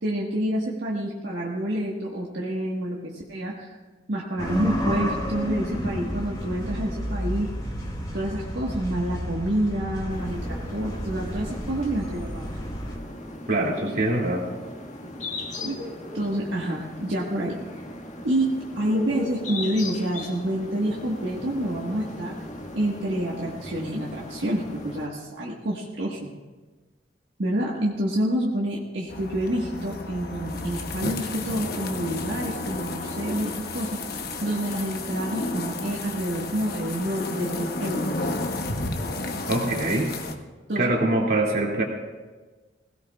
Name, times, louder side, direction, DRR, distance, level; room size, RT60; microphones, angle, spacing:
voice 1, 0.0-3.8 4.1-7.5 8.1-12.6 15.6-15.8 16.1-17.6 18.2-22.3 22.7-26.3 27.4-38.1 40.7-40.9, right 1 dB, 80° right, -4 dB, 1.5 m, -28 dB
sound 1, 4.4-13.0, equal, 25° left, 2.1 m, -31 dB
sound 2, 10.1-25.1, left 2 dB, 40° left, 1.8 m, -38 dB
voice 2, 13.5-14.4 39.5-40.1 40.8-41.8, right 2 dB, 60° right, -1 dB, 2.5 m, -23 dB
sound 3, 29.1-40.3, left 2 dB, 55° left, 1.1 m, -32 dB
21.0 x 17.0 x 2.4 m, 1.3 s
head